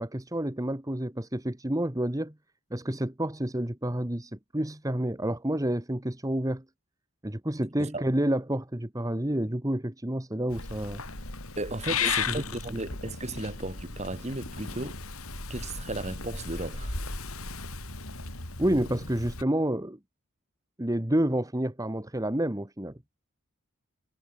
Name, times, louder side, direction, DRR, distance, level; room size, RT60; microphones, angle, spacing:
voice 1, 0.0-2.3 2.7-6.6 7.2-11.0 12.0-12.4 18.6-20.0 20.8-22.9, right 1 dB, 15° right, 1.4 m, -29 dB
Purr / Meow, 10.5-19.4, left 5 dB, 75° left, 7.1 m, -35 dB
voice 2, 11.6-15.0 15.5-17.0, right 2 dB, 30° right, 2.4 m, -35 dB
head